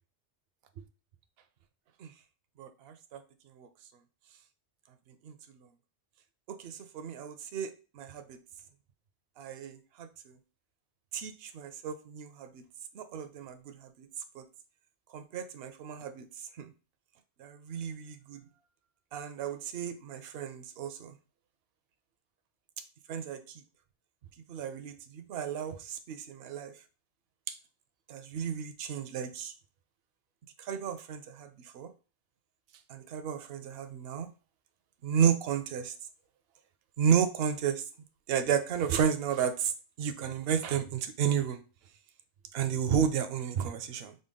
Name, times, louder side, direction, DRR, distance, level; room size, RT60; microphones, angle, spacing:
voice 1, 2.6-3.2 3.6-3.7 5.2-5.3 6.5-8.4 9.4-10.3 11.1-12.6 12.9-14.1 14.3-14.4 15.1-16.3 16.6-16.7 17.4-18.4 19.1-21.1 23.1-23.6 24.5-26.7 27.5-27.6 28.1-29.5 30.6-31.9 32.9-34.3 35.0-35.9 37.0-37.8 38.3-39.7 40.0-41.6 42.5-44.1, right 8 dB, 65° right, 9 dB, 0.8 m, -32 dB
5.1 x 2.2 x 3.6 m, 0.34 s
omnidirectional pair, 1.2 m